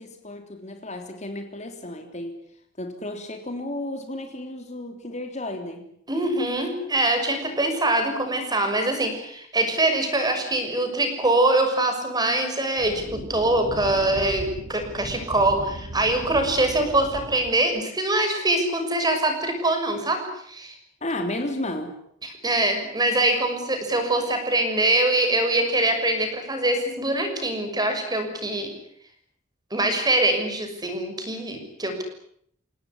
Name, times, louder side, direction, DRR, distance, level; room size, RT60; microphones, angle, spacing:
voice 1, 0.0-2.3 2.8-5.8 21.0-21.9, left 1 dB, 35° left, 5 dB, 3.4 m, -33 dB
voice 2, 6.1-20.2 20.5-20.7 22.2-28.7 29.7-32.0, right 2 dB, 20° right, 5 dB, 6.4 m, -23 dB
sound 1, 12.8-17.7, equal, 80° right, 7.9 m, -37 dB
28.5 x 18.5 x 9.9 m, 0.69 s
head